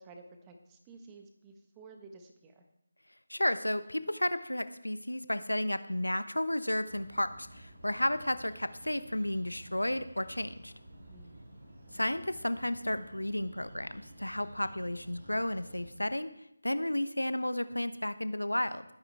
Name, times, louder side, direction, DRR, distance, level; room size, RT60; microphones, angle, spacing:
voice 1, 0.0-2.6 11.1-11.4, right 3 dB, 15° right, 4 dB, 1.4 m, -53 dB
voice 2, 3.3-10.7 11.9-16.3 16.6-18.8, left 1 dB, 85° left, 12 dB, 1.0 m, -32 dB
sound 1, 6.8-15.9, right 1 dB, 50° right, 6.4 m, -52 dB
20.5 x 9.8 x 3.5 m, 0.80 s
figure-of-eight pair, 160°, 0 cm